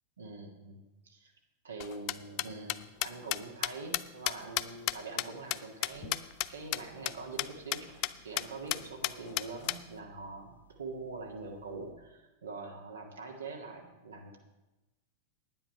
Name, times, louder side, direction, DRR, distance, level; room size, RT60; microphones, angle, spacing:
voice 1, 0.2-1.3 1.6-6.2 6.5-14.4, right 3 dB, 70° right, 1 dB, 1.6 m, -44 dB
sound 1, 1.8-6.5 6.7-6.8 7.1-7.2 7.4-7.5 7.7-8.1 8.4-8.5 8.7-9.8, left 18 dB, 40° left, 0.4 m, -32 dB
sound 2, 5.9-11.9, right 5 dB, 80° left, 0.8 m, -62 dB
10.0 x 9.5 x 5.6 m, 1.1 s
figure-of-eight pair, 90°, 0 cm